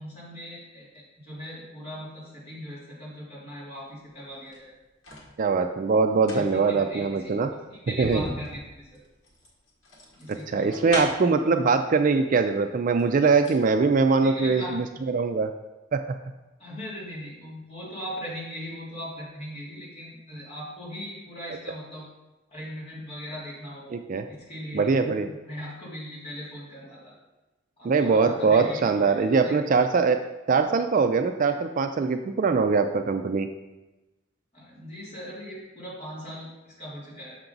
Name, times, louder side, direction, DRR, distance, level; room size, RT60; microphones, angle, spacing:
voice 1, 0.0-4.7 6.3-7.3 7.7-9.0 10.2-11.3 14.2-14.7 16.6-22.1 22.5-24.0 24.4-27.1 27.8-29.6 34.5-37.4, equal, 30° left, -7 dB, 2.7 m, -39 dB
sound 1, 4.3-5.3 6.0-11.4 12.4-12.5 12.9-13.7 14.0-14.1, left 1 dB, 75° left, 1.6 m, -38 dB
voice 2, 5.4-7.5 8.0-8.2 10.3-15.5 15.9-16.0 23.9-24.3 24.7-25.3 27.8-30.2 30.5-33.5, right 4 dB, 40° right, 7 dB, 0.3 m, -22 dB
6.8 x 5.9 x 3.9 m, 1.0 s
head